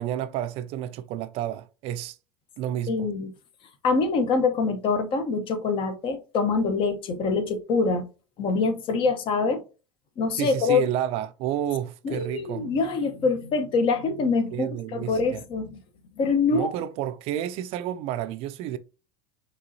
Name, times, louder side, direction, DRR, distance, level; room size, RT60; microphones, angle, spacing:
voice 1, 0.0-2.2 2.6-3.1 10.4-12.7 14.5-15.4 16.5-18.8, right 11 dB, 50° right, 0.4 m, -30 dB
voice 2, 2.9-3.3 3.8-8.1 8.4-9.6 10.2-10.8 12.0-15.8 16.2-16.7, left 4 dB, 45° left, 0.9 m, -25 dB
5.2 x 3.1 x 2.7 m
hypercardioid pair, 90°, 12 cm